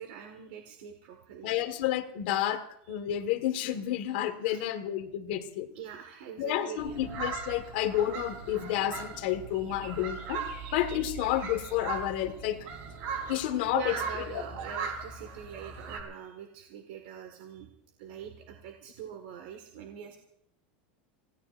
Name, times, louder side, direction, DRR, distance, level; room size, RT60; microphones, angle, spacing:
voice 1, 0.0-1.5 4.4-4.6 5.8-6.8 13.7-17.7 18.0-20.2, right 8 dB, 60° right, 4 dB, 1.7 m, -43 dB
voice 2, 1.4-5.7 6.4-10.4 10.7-12.7 13.3-13.9, left 12 dB, 60° left, 5 dB, 1.6 m, -30 dB
sound 1, 6.8-16.0, right 5 dB, 45° right, 3.1 m, -39 dB
28.5 x 17.0 x 2.6 m, 0.72 s
supercardioid pair, 180°, 6 cm